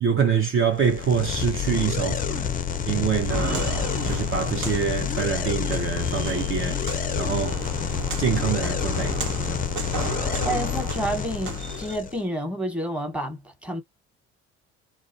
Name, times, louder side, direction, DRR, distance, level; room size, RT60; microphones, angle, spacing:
voice 1, 0.0-2.5 2.9-3.7 4.0-6.8 7.2-7.6 8.2-9.6, right 7 dB, 40° right, 0.7 m, -25 dB
sound 1, 0.8-12.2, left 7 dB, 25° left, 0.4 m, -28 dB
Walk footsteps, 3.2-12.0, right 4 dB, 65° right, 1.1 m, -34 dB
voice 2, 10.4-13.8, right 1 dB, 5° right, 1.2 m, -29 dB
2.3 x 2.1 x 2.5 m
supercardioid pair, 70°, 32 cm